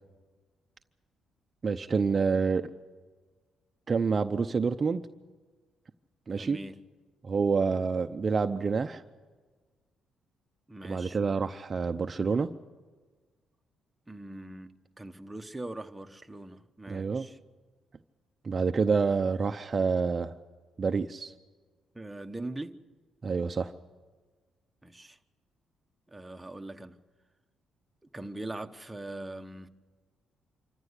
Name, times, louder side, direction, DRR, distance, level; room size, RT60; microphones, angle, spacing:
voice 1, 1.6-2.6 3.9-5.0 6.3-6.6 7.2-9.0 10.8-12.5 16.9-17.3 18.4-20.3 20.8-21.3 23.2-23.7, right 5 dB, 35° right, 0.7 m, -27 dB
voice 2, 6.3-6.8 10.7-11.2 14.1-17.4 21.9-22.8 24.8-25.2 26.1-27.0 28.1-29.7, right 2 dB, 10° right, 1.2 m, -41 dB
26.0 x 14.5 x 8.3 m
cardioid pair, 90°, 0 cm